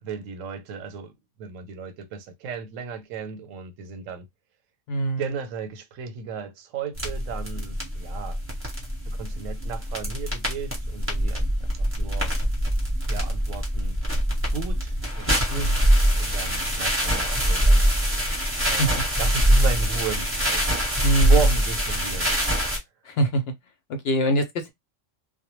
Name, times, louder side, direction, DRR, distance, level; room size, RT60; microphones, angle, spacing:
voice 1, 0.0-4.3 5.2-8.4 9.1-12.3 13.0-14.0 14.5-15.7 16.1-17.8 18.7-20.8 21.2-22.5, right 6 dB, 85° right, 1.0 m, -34 dB
voice 2, 4.9-5.2 15.5-15.8 18.8-18.9 21.0-21.4 23.0-23.4 23.9-24.7, right 1 dB, 65° left, 0.7 m, -23 dB
sound 1, 6.9-22.8, equal, 10° right, 0.8 m, -23 dB
2.2 x 2.1 x 2.9 m
omnidirectional pair, 1.3 m